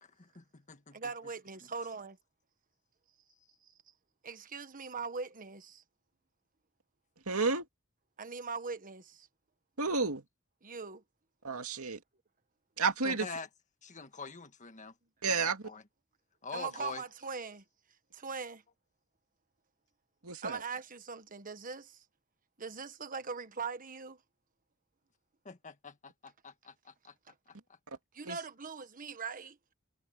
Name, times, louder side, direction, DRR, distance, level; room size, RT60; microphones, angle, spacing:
voice 1, 0.0-1.0 13.0-13.5 13.8-14.9 15.3-15.8 16.4-17.0 25.4-27.1 27.5-27.8, left 4 dB, 35° left, 1.6 m, -45 dB
voice 2, 0.9-2.2 4.2-5.8 8.2-9.3 10.6-11.0 16.5-17.6 18.1-18.6 20.4-22.0 22.6-24.2 27.3-27.4 28.1-29.7, right 5 dB, 40° right, 1.4 m, -41 dB
voice 3, 7.3-7.7 9.8-10.2 11.4-12.0 12.8-13.3 15.2-15.6 20.2-20.6 28.2-28.4, right 4 dB, 75° right, 2.4 m, -31 dB
head